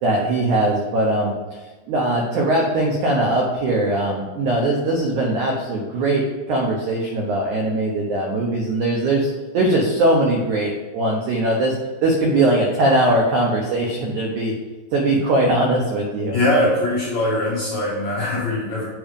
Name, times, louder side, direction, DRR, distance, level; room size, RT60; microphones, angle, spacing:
voice 1, 0.0-1.3 1.9-11.7 12.0-14.5 14.9-16.4, right 1 dB, 85° right, -2 dB, 1.7 m, -20 dB
voice 2, 16.3-18.9, left 1 dB, 60° left, -6 dB, 1.9 m, -21 dB
7.7 x 5.0 x 5.3 m, 1.3 s
omnidirectional pair, 4.9 m